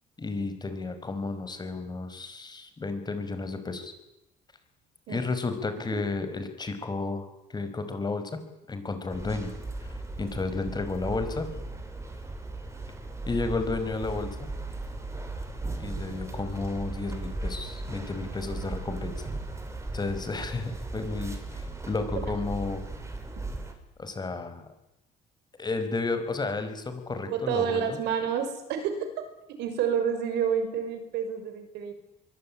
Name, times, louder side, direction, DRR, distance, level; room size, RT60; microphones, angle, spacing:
voice 1, 0.2-3.9 5.1-8.3 8.7-9.5 9.8-11.5 13.3-14.5 15.8-19.3 19.9-22.8 24.0-24.6 25.6-28.0, left 3 dB, 25° left, 9 dB, 5.2 m, -32 dB
sound 1, 9.1-23.7, right 2 dB, 15° right, 5.7 m, -37 dB
voice 2, 27.3-29.1 29.6-31.9, right 7 dB, 85° right, 8 dB, 6.4 m, -29 dB
23.5 x 22.0 x 10.0 m, 0.92 s
cardioid pair, 110°, 17 cm